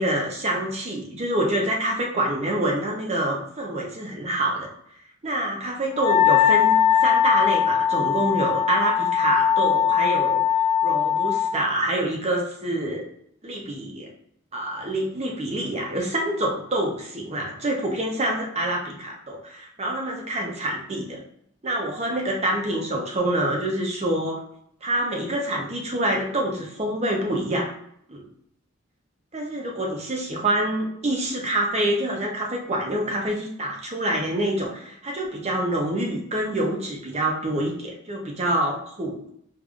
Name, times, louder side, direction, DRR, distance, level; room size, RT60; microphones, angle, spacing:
voice 1, 0.0-4.7 5.2-10.4 10.8-13.0 13.4-14.1 14.5-21.2 21.6-24.4 24.8-27.7 28.1-28.2 29.3-39.3, right 1 dB, 35° right, -1 dB, 0.8 m, -26 dB
Wind instrument woodwind instrument, 6.0-11.5, left 9 dB, 30° left, 0.5 m, -20 dB
5.1 x 2.7 x 2.4 m, 0.69 s
head